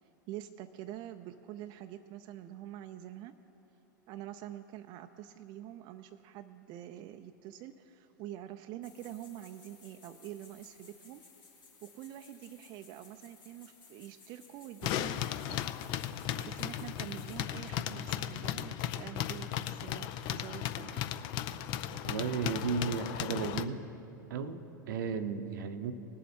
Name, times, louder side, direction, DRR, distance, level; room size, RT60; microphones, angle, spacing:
voice 1, 0.3-3.4 4.1-11.2 11.8-15.7 16.4-21.1, right 12 dB, 45° right, 7 dB, 0.4 m, -46 dB
sound 1, 8.8-17.4, left 5 dB, 75° left, 2.8 m, -59 dB
sound 2, 14.8-23.7, left 11 dB, 45° left, 0.5 m, -36 dB
voice 2, 21.9-23.8 24.3-25.9, right 6 dB, 70° right, 10 dB, 0.8 m, -34 dB
19.5 x 7.2 x 4.4 m, 3.0 s
hypercardioid pair, 100°, 11 cm